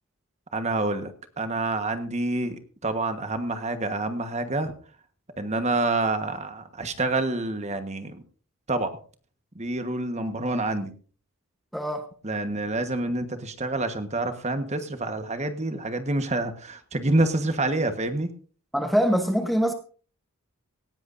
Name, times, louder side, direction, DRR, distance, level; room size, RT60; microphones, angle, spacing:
voice 1, 0.5-4.7 5.4-8.2 8.7-8.9 9.5-10.9 12.2-18.3, right 2 dB, 30° right, 8 dB, 1.3 m, -27 dB
voice 2, 11.7-12.0 18.7-19.7, equal, ahead, 6 dB, 1.0 m, -23 dB
18.0 x 16.0 x 2.6 m, 0.41 s
head